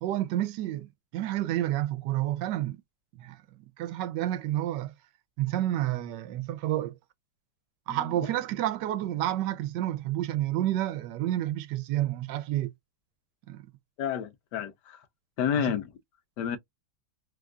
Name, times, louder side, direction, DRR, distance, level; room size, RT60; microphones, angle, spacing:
voice 1, 0.0-2.8 3.2-3.4 3.8-4.9 5.4-6.9 7.9-12.7 13.5-13.6 15.6-15.7, right 13 dB, 90° right, 1.2 m, -30 dB
voice 2, 14.0-15.0 15.4-15.9 16.4-16.6, left 9 dB, 80° left, 1.3 m, -30 dB
3.4 x 2.3 x 2.3 m
omnidirectional pair, 1.8 m